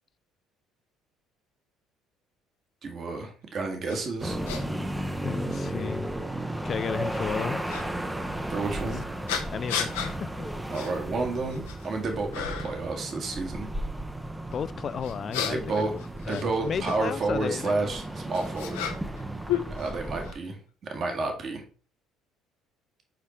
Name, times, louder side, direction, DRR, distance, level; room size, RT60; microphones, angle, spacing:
voice 1, 2.8-4.4 8.5-9.0 10.7-13.7 15.5-15.9 16.3-18.9 19.8-20.6 20.9-21.6, right 3 dB, 50° right, 1.7 m, -30 dB
sound 1, 3.9-4.0 4.5-4.6 5.5-5.6 7.7-7.9 9.3-10.1 10.7-10.9 11.4-11.9 12.3-12.8 15.0-17.0 17.9-19.2 19.5-20.4, left 8 dB, 85° left, 0.9 m, -33 dB
sound 2, 4.2-20.3, right 1 dB, 10° right, 0.7 m, -34 dB
voice 2, 5.2-6.1 6.6-7.6 8.9-9.0 9.5-10.5 14.5-15.6 15.9-17.7, left 7 dB, 45° left, 0.3 m, -33 dB
5.0 x 4.6 x 4.3 m
hypercardioid pair, 70°, 0 cm